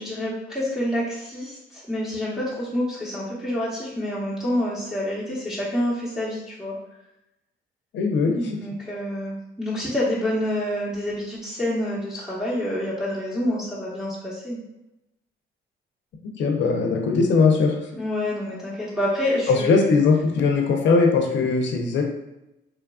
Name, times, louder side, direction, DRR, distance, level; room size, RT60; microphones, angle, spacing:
voice 1, 0.0-6.7 8.4-14.6 17.9-19.9, left 1 dB, 5° right, -9 dB, 0.8 m, -27 dB
voice 2, 7.9-8.3 16.4-17.8 19.5-22.0, left 4 dB, 65° left, 2 dB, 0.6 m, -20 dB
3.1 x 2.3 x 2.3 m, 0.90 s
cardioid pair, 90°, 20 cm